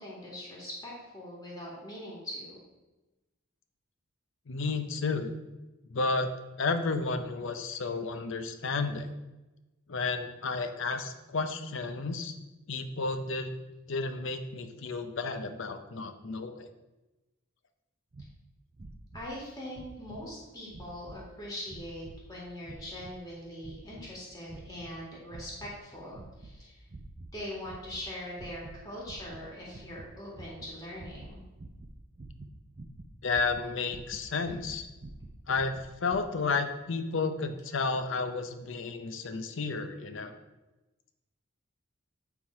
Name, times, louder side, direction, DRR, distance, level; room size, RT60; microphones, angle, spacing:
voice 1, 0.0-2.6 19.1-26.8 27.3-31.4, left 1 dB, 15° left, -5 dB, 2.0 m, -42 dB
voice 2, 4.5-5.3 5.9-6.3 6.6-9.1 9.9-12.4 12.7-13.5 13.9-16.7 33.2-34.9 35.5-35.7 36.0-40.4, left 4 dB, 60° left, 9 dB, 0.6 m, -32 dB
sound 1, 18.1-18.3 18.7-19.4 19.7-20.3 20.7-21.2 21.7-22.2 22.6-23.2 23.6-24.1 24.5-24.9 25.3-25.8 26.1-26.5 26.9-27.3 27.6-28.1 28.3-28.8 29.0-36.2, right 2 dB, 35° right, 0.6 m, -47 dB
8.9 x 3.7 x 4.7 m, 1.1 s
head